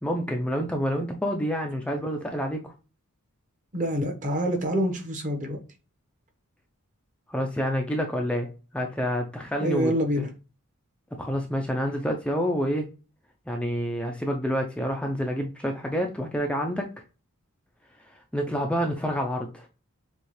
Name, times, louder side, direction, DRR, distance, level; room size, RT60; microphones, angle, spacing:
voice 1, 0.0-2.7 7.3-9.9 10.2-10.3 11.2-12.8 13.5-16.9 18.3-19.7, equal, 5° left, 0.5 m, -28 dB
voice 2, 3.7-5.6 9.6-10.3, equal, 35° right, 1.2 m, -26 dB
7.0 x 2.4 x 3.2 m
head